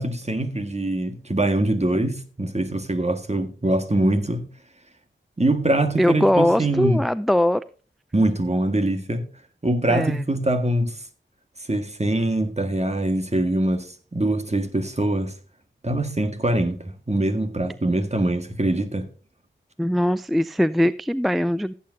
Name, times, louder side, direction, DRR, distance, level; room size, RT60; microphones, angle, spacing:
voice 1, 0.0-4.5 5.4-7.0 8.1-9.3 9.6-11.0 11.7-15.3 15.8-19.1, right 1 dB, 35° right, 1.7 m, -23 dB
voice 2, 6.0-7.6 9.9-10.2 19.8-21.7, left 1 dB, ahead, 0.4 m, -21 dB
15.5 x 8.6 x 2.7 m
cardioid pair, 45°, 20 cm